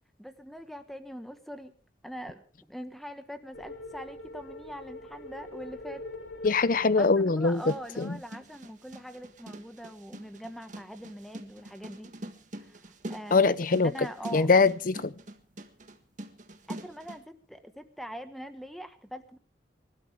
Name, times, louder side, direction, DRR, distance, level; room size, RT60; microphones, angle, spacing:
voice 1, 0.2-1.7 2.0-2.4 2.7-6.0 7.0-12.1 12.6-12.8 13.1-13.6 13.8-14.5 16.7-19.4, equal, ahead, 1.4 m, -42 dB
sound 1, 3.5-7.9, left 2 dB, 85° left, 3.4 m, -44 dB
voice 2, 6.4-8.2 13.3-13.9 14.3-15.1, left 4 dB, 50° left, 0.6 m, -23 dB
sound 2, 7.5-17.2, right 1 dB, 45° right, 1.6 m, -44 dB
26.5 x 12.5 x 3.5 m
head